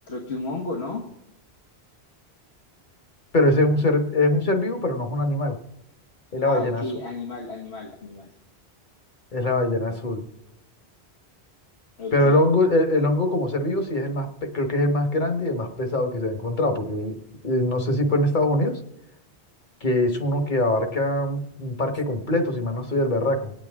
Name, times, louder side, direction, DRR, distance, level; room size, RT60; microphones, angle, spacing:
voice 1, 0.1-1.0 6.4-8.3 12.0-12.4, left 3 dB, 85° left, 0 dB, 1.7 m, -32 dB
voice 2, 3.3-5.6 6.3-6.8 9.3-10.3 12.1-18.8 19.8-23.5, left 1 dB, 50° left, 6 dB, 1.4 m, -23 dB
25.0 x 8.8 x 3.5 m, 0.86 s
omnidirectional pair, 1.1 m